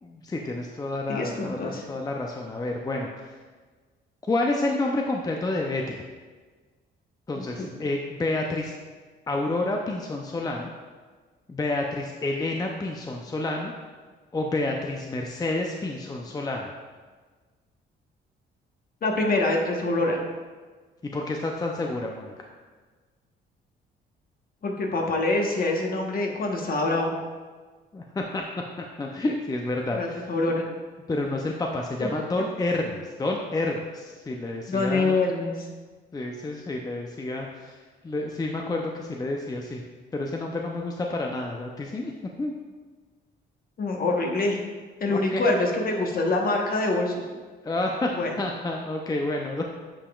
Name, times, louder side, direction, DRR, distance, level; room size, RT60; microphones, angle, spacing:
voice 1, 0.0-3.1 4.3-6.0 7.3-8.7 9.3-10.7 11.5-13.7 14.3-16.7 21.0-22.3 27.9-28.4 28.8-30.5 31.1-35.2 36.1-37.8 38.0-39.8 40.1-42.1 42.4-42.5 45.1-45.4 47.6-49.6, left 2 dB, 20° left, 1 dB, 0.5 m, -29 dB
voice 2, 1.1-1.8 7.4-7.7 19.0-20.2 24.6-27.1 29.9-30.6 34.7-35.7 43.8-44.6 45.0-47.2 48.1-48.3, left 2 dB, 45° left, 1 dB, 1.2 m, -25 dB
8.7 x 5.0 x 2.4 m, 1.4 s
cardioid pair, 90°, 20 cm